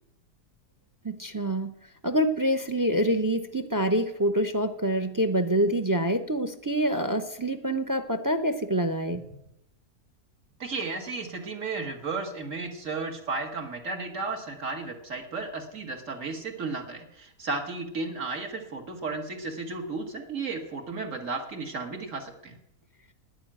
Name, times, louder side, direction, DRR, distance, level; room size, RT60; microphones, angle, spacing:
voice 1, 1.0-1.7 2.0-9.2, right 1 dB, 25° right, 9 dB, 0.4 m, -26 dB
voice 2, 10.6-22.6, right 3 dB, 55° right, 3 dB, 2.2 m, -34 dB
11.5 x 10.0 x 8.9 m, 0.82 s
omnidirectional pair, 1.7 m